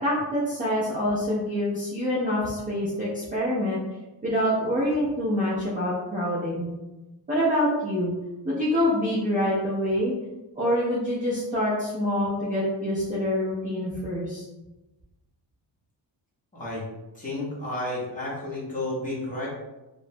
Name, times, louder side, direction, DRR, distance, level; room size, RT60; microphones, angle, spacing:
voice 1, 0.0-3.8 4.2-6.7 7.3-8.1 8.4-10.1 10.6-14.4, equal, 20° right, -8 dB, 0.4 m, -26 dB
voice 2, 16.5-16.8 17.1-19.5, left 2 dB, 20° left, -6 dB, 0.7 m, -31 dB
2.9 x 2.1 x 2.6 m, 1.0 s
cardioid pair, 170°, 43 cm